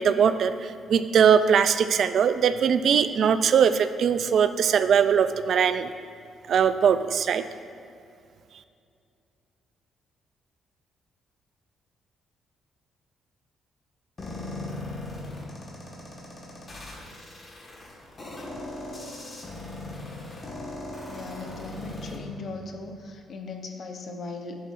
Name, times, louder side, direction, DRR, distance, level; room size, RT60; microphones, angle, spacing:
voice 1, 0.0-5.9 6.5-7.4, right 7 dB, 60° right, 12 dB, 0.3 m, -21 dB
sound 1, 14.2-22.2, left 2 dB, 30° left, 1.5 m, -38 dB
voice 2, 21.1-24.6, left 3 dB, 50° left, 4 dB, 0.7 m, -38 dB
10.0 x 7.2 x 2.5 m, 2.5 s
cardioid pair, 110°, 0 cm